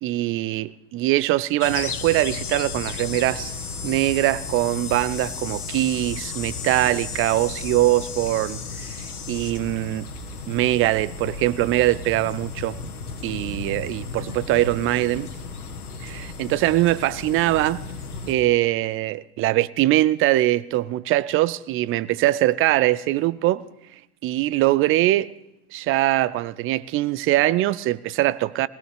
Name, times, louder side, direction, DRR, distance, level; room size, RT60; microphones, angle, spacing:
voice 1, 0.0-3.5 3.8-8.9 9.3-10.1 10.5-12.8 13.2-15.3 16.0-17.8 18.3-23.6 24.2-25.3 25.7-28.7, right 15 dB, 30° right, 0.4 m, -22 dB
sound 1, 1.6-18.3, left 4 dB, 85° left, 1.5 m, -34 dB
21.0 x 18.0 x 3.4 m
hypercardioid pair, 80°, 43 cm